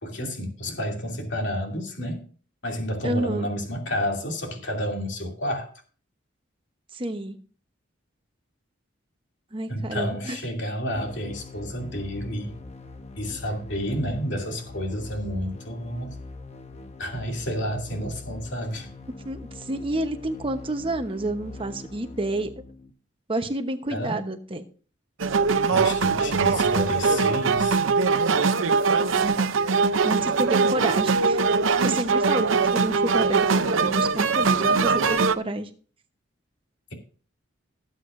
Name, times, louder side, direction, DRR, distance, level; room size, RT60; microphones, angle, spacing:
voice 1, 0.0-2.3 2.6-5.7 9.7-12.5 13.2-16.2 17.0-18.9 23.9-24.2 25.6-27.8, equal, 60° left, 2 dB, 2.8 m, -30 dB
voice 2, 3.0-3.5 6.9-7.4 9.5-10.4 19.2-22.5 23.3-24.6 29.1-29.5 30.0-35.7, right 1 dB, 25° right, 7 dB, 1.0 m, -29 dB
sound 1, 10.9-22.9, left 3 dB, 35° left, 0.8 m, -42 dB
sound 2, 25.2-35.4, right 4 dB, 80° right, 0.6 m, -22 dB
17.5 x 8.2 x 2.6 m, 0.41 s
head